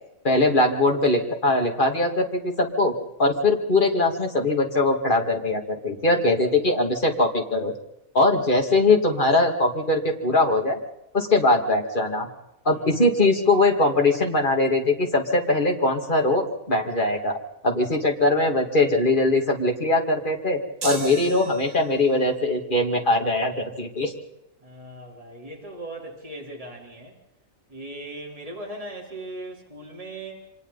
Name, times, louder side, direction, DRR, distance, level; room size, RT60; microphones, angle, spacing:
voice 1, 0.2-2.9 3.2-7.7 8.1-10.8 11.1-12.3 12.6-17.4 17.6-24.1, left 2 dB, 35° left, 2 dB, 2.7 m, -21 dB
voice 2, 12.6-13.3 24.6-27.1 27.7-30.5, right 1 dB, 25° right, -2 dB, 4.1 m, -39 dB
sound 1, 20.8-22.1, right 4 dB, 85° right, 2.5 m, -35 dB
29.0 x 25.5 x 4.2 m, 0.87 s
omnidirectional pair, 1.4 m